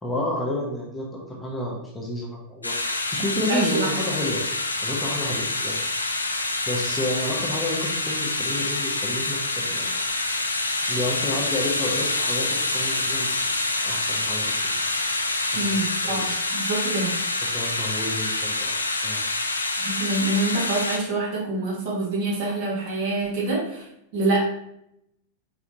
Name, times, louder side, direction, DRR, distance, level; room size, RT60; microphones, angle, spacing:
voice 1, 0.0-4.4 4.8-5.9 6.7-9.9 10.9-14.6 15.4-16.4 17.5-19.3, left 1 dB, 10° left, -2 dB, 1.0 m, -31 dB
sound 1, 2.6-21.0, left 2 dB, 80° left, 0.4 m, -26 dB
voice 2, 3.4-3.9 15.5-17.1 19.8-23.9 24.1-24.4, right 2 dB, 50° right, -4 dB, 1.8 m, -26 dB
4.7 x 4.0 x 2.9 m, 0.79 s
figure-of-eight pair, 90°, 0 cm